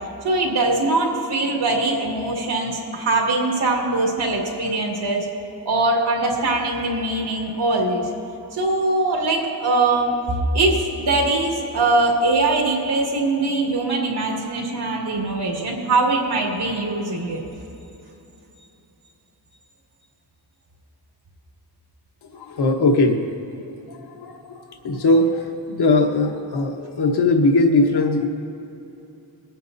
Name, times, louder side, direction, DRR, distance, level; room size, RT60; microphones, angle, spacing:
voice 1, 0.2-5.3 5.7-8.1 8.5-10.2 10.5-17.4, right 2 dB, 70° right, -2 dB, 2.2 m, -22 dB
voice 2, 22.3-23.2 23.9-28.3, left 2 dB, 70° left, 3 dB, 1.1 m, -20 dB
24.0 x 9.1 x 2.6 m, 2.9 s
wide cardioid pair, 175°, 41 cm